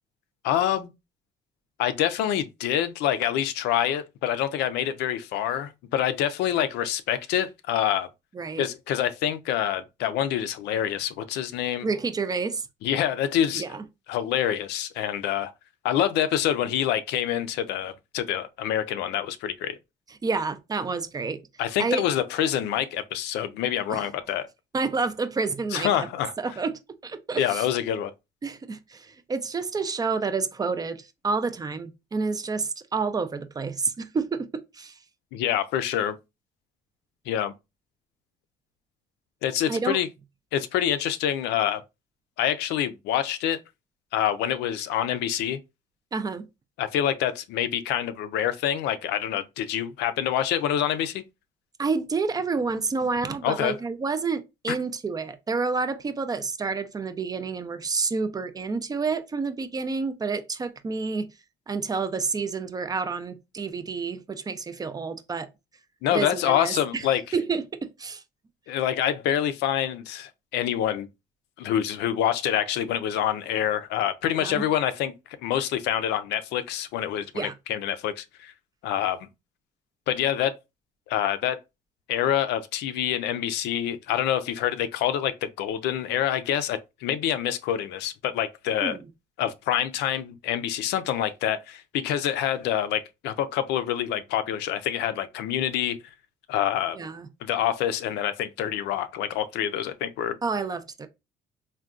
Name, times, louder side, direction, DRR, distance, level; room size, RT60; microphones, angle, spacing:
voice 1, 0.4-0.9 1.8-8.1 8.6-11.9 12.8-13.6 14.1-15.5 15.8-19.8 21.6-24.5 25.7-26.3 27.4-28.1 35.3-36.2 37.3-37.5 39.4-40.1 40.5-41.8 42.4-43.6 44.1-45.6 46.8-51.2 53.4-53.8 66.0-67.2 68.7-71.1 71.6-75.1 75.4-78.5 78.8-79.3 80.1-80.5 81.1-81.6 82.1-89.0 89.4-96.0 96.5-97.0 97.4-100.4, left 10 dB, 85° left, 0.4 m, -26 dB
voice 2, 11.8-12.7 13.5-13.8 20.2-21.4 21.8-22.0 23.9-24.1 24.7-26.1 26.4-26.7 27.0-27.7 28.4-34.9 39.7-40.0 46.1-46.4 51.8-61.3 61.7-65.5 66.1-67.1 67.3-68.2 74.4-74.7 77.3-77.5 88.8-89.0 96.9-97.3 100.4-101.1, right 4 dB, 20° right, 0.4 m, -29 dB
3.6 x 2.2 x 2.4 m
cardioid pair, 110°, 17 cm